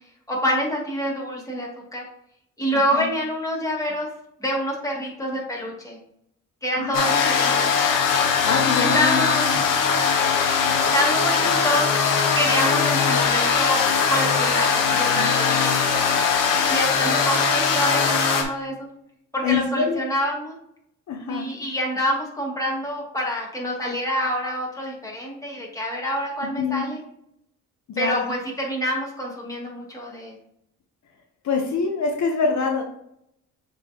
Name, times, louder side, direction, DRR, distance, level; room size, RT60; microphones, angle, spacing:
voice 1, 0.3-2.0 2.6-4.1 4.4-6.0 6.6-7.7 8.6-9.6 10.6-11.9 12.3-15.7 16.7-18.9 19.3-20.6 21.3-27.0 28.0-30.4, equal, 10° left, -3 dB, 2.5 m, -27 dB
voice 2, 2.7-3.1 6.8-7.0 8.4-9.3 9.5-9.6 14.9-15.3 19.4-20.0 21.1-21.5 26.6-26.9 27.9-28.3 31.4-32.8, left 5 dB, 60° left, 3 dB, 1.0 m, -25 dB
sound 1, 6.9-18.4, left 6 dB, 75° left, 1.3 m, -20 dB
7.3 x 4.6 x 2.9 m, 0.74 s
cardioid pair, 100°, 32 cm